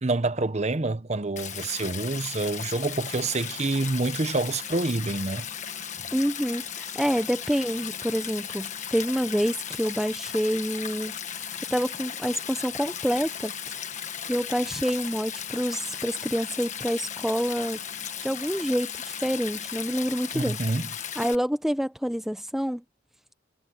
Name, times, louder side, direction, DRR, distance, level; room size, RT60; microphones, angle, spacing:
voice 1, 0.0-5.5 20.3-20.9, right 2 dB, 35° right, 0.8 m, -27 dB
Stream, 1.4-21.4, left 8 dB, 35° left, 1.5 m, -36 dB
voice 2, 6.1-11.1 11.7-13.5 14.3-17.8 18.2-20.6 21.2-22.8, equal, ahead, 0.6 m, -27 dB
head